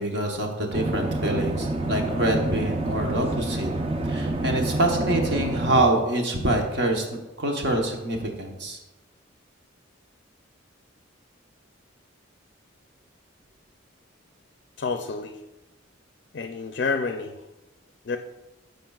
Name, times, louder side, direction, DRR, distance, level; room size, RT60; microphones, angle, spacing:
voice 1, 0.0-3.7 4.1-7.0 7.4-8.8, right 1 dB, 55° right, 1 dB, 1.0 m, -25 dB
sound 1, 0.7-5.8, right 2 dB, 30° right, 0.5 m, -28 dB
voice 2, 14.8-15.3 16.3-17.3 18.1-18.2, left 4 dB, 55° left, 6 dB, 0.4 m, -28 dB
13.5 x 5.2 x 2.4 m, 1.1 s
head